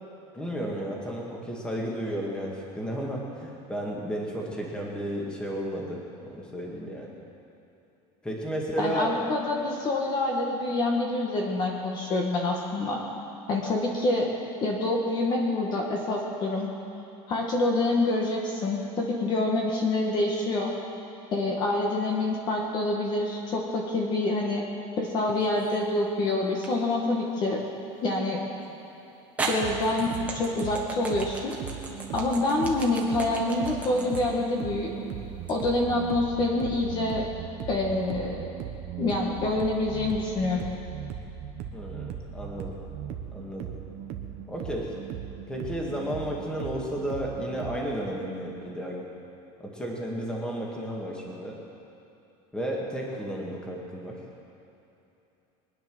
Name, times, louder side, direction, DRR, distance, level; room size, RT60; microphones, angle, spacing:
voice 1, 0.3-7.1 8.2-9.2 41.7-42.8 43.3-43.7 44.5-44.9 45.5-49.0 49.6-51.6 52.5-54.2, equal, 5° left, -2 dB, 2.0 m, -33 dB
voice 2, 8.8-13.0 13.5-14.3 14.6-16.7 17.3-20.7 21.3-24.6 25.0-27.6 28.0-28.4 29.4-31.5 32.1-34.9 35.5-37.2 37.7-38.5 39.0-40.7, left 2 dB, 30° left, -1 dB, 1.7 m, -26 dB
sound 1, 25.3-25.9 26.6-26.7 28.6-28.7 29.4-35.6, right 3 dB, 10° right, 1.6 m, -35 dB
sound 2, 29.4-47.8, right 9 dB, 45° right, 1.2 m, -38 dB
23.5 x 9.8 x 6.3 m, 2.9 s
cardioid pair, 170°, 14 cm